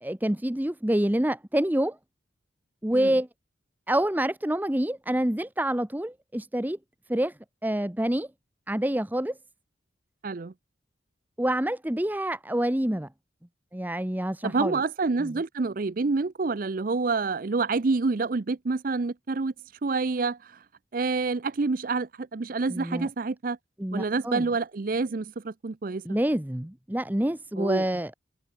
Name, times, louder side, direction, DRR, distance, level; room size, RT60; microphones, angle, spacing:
voice 1, 0.0-2.0 2.8-3.3 3.9-6.8 7.1-7.3 7.6-8.3 8.7-9.4 11.4-13.1 13.7-14.8 15.2-15.4 22.7-23.1 23.8-24.5 26.0-28.1, right 1 dB, 10° right, 0.7 m, -27 dB
voice 2, 14.4-19.5 19.8-20.6 20.9-23.6 23.9-26.1 27.6-27.9, right 4 dB, 45° right, 0.5 m, -28 dB
head